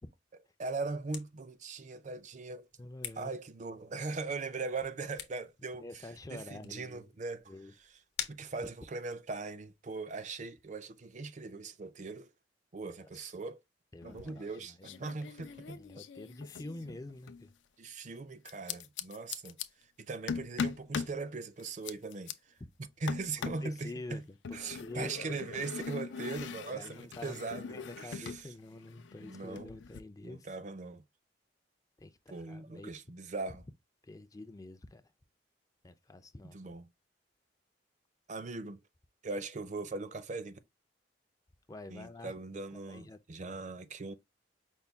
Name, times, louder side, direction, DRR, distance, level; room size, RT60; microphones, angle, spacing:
voice 1, 0.6-2.6 3.2-7.5 8.3-12.3 12.7-13.6 14.0-15.8 17.8-19.6 20.0-22.3 22.8-24.2 24.5-28.5 29.2-29.7 30.2-31.0 32.3-33.6 36.4-36.9 38.3-38.8 39.2-40.6 41.9-44.1, right 3 dB, 40° right, 0.5 m, -40 dB
sound 1, 0.7-9.3, left 9 dB, 60° left, 0.9 m, -49 dB
voice 2, 2.8-3.3 5.7-7.1 7.5-7.7 13.0-13.3 13.9-15.0 15.7-17.5 23.4-25.3 26.7-30.5 32.0-32.9 34.0-35.0 35.8-36.6 41.7-43.2, left 2 dB, 20° left, 0.4 m, -47 dB
sound 2, 14.0-14.6 14.8-17.4 18.4-19.7 20.3-21.2 21.6-22.3 23.1-23.7 24.4-28.4 28.7-30.0, left 6 dB, 75° left, 0.4 m, -41 dB
5.4 x 2.2 x 3.4 m
head